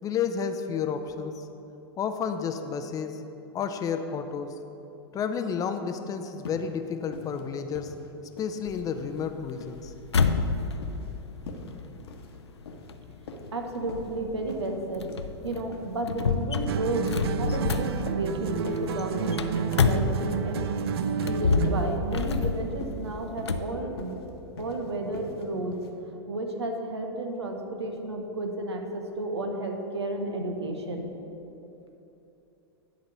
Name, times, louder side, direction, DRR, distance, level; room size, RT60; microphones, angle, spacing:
voice 1, 0.0-1.4 2.0-3.2 3.5-4.6 5.1-7.9 8.4-9.9, left 6 dB, 25° left, 8 dB, 0.5 m, -31 dB
sound 1, 6.4-6.7 7.1-7.4 7.7-8.6 8.9-9.2 9.5-9.8 10.2-10.4 10.8-11.1 11.5-11.7 12.0-12.3 12.6-12.9 13.3-14.1 14.5-14.7 15.1-15.3 15.7-15.9 16.3-16.5 16.8-17.1 17.5-17.7 18.1-18.3 18.7-18.9 19.3-19.4 19.8-20.2 20.5-20.7 21.1-21.2 21.6-21.9 22.2-22.4 22.8-23.1 23.4-23.6 24.0-24.2 24.6-24.8 25.1-25.4 25.7-25.9, left 3 dB, 65° left, 1.1 m, -42 dB
sound 2, 8.7-20.6 21.1-23.7, left 4 dB, 85° left, 0.4 m, -29 dB
voice 2, 13.5-15.1 15.4-20.7 21.1-24.3 24.6-25.8 26.3-31.1, right 2 dB, 85° right, 3 dB, 1.0 m, -32 dB
sound 3, 16.7-22.0, right 7 dB, 70° right, 0.4 m, -30 dB
10.5 x 4.1 x 6.1 m, 2.9 s
hypercardioid pair, 100°, 14 cm